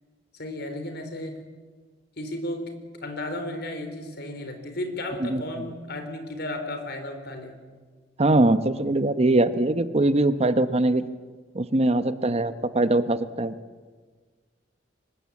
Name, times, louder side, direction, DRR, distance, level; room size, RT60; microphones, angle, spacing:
voice 1, 0.3-1.4 2.2-2.7 3.0-7.5, left 1 dB, 60° left, 7 dB, 3.9 m, -34 dB
voice 2, 8.2-11.0 11.5-13.5, right 2 dB, 35° right, 12 dB, 0.9 m, -22 dB
24.5 x 20.5 x 8.5 m, 1.4 s
head